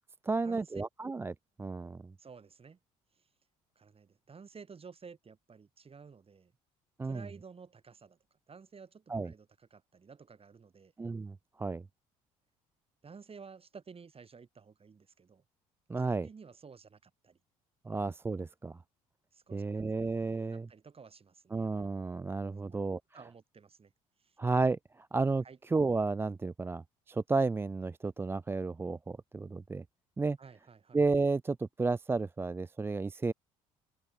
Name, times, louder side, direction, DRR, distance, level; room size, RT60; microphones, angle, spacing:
voice 1, 0.2-2.1 7.0-7.3 9.1-9.3 11.0-11.8 15.9-16.3 17.9-18.8 19.5-20.7 21.5-23.0 24.4-29.8 30.2-30.4 30.9-33.3, right 3 dB, 15° right, 0.4 m, -32 dB
voice 2, 2.2-2.8 3.2-3.3 3.8-6.5 7.0-8.2 8.5-10.9 13.0-15.4 16.0-17.4 19.3-19.8 20.4-21.6 22.6-22.8 23.1-23.9 24.2-24.4 25.4-25.6 30.4-31.0, right 5 dB, 35° right, 5.8 m, -53 dB
open air
figure-of-eight pair, 55°, 18 cm